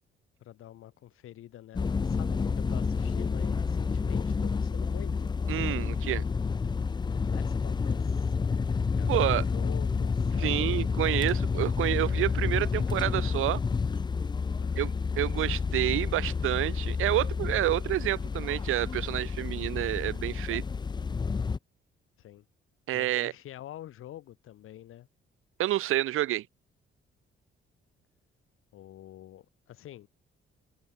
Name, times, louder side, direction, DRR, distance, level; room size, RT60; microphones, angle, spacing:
voice 1, 0.4-5.3 7.0-8.3 8.9-10.8 14.6-14.9 22.2-22.4 22.9-25.1 28.7-30.1, left 12 dB, 85° left, 4.6 m, -47 dB
sound 1, 1.7-21.6, left 5 dB, 20° left, 0.5 m, -29 dB
voice 2, 5.5-6.2 9.1-9.5 10.4-13.6 14.8-20.6 22.9-23.3 25.6-26.5, right 14 dB, 80° right, 0.7 m, -29 dB
cardioid pair, 145°, 21 cm